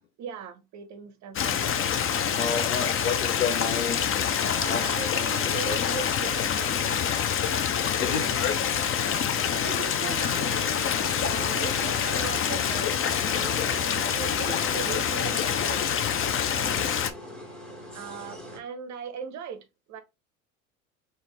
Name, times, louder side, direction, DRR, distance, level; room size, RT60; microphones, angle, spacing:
voice 1, 0.2-1.7 4.6-7.0 8.0-8.4 9.5-10.6 11.2-12.9 13.3-15.8 16.5-16.9 17.9-20.0, right 6 dB, 45° right, 0.6 m, -39 dB
Stream, 1.4-17.1, left 8 dB, 30° left, 0.6 m, -26 dB
voice 2, 2.4-4.8 5.1-5.8 8.0-8.6, left 6 dB, 85° left, 0.7 m, -31 dB
sound 1, 10.3-18.6, equal, ahead, 1.6 m, -43 dB
4.0 x 2.5 x 3.2 m
hypercardioid pair, 75°, 41 cm